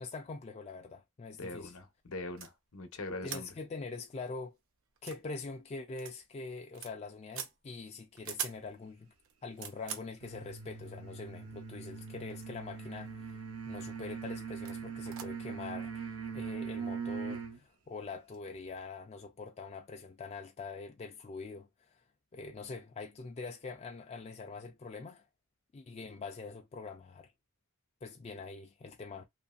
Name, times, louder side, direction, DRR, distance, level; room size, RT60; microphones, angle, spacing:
voice 1, 0.0-1.8 3.2-4.6 5.0-9.1 9.4-13.4 13.7-22.0 22.3-25.3 25.7-27.3 28.0-29.2, left 4 dB, 30° left, 0.3 m, -44 dB
voice 2, 1.4-3.5, left 2 dB, 70° left, 0.7 m, -42 dB
sound 1, 2.4-2.5 3.3-3.5 3.9-4.0 4.3-4.4 4.9-5.2 6.0-6.2 6.5-6.9 7.3-7.5 8.2-8.6 9.2-10.1 11.1-11.2 12.0-12.6 12.8-13.3 13.8-14.0 14.6-14.8 15.0-15.3, right 8 dB, 65° right, 0.6 m, -42 dB
sound 2, 10.2-17.6, right 6 dB, 85° right, 1.0 m, -41 dB
2.9 x 2.6 x 2.3 m
head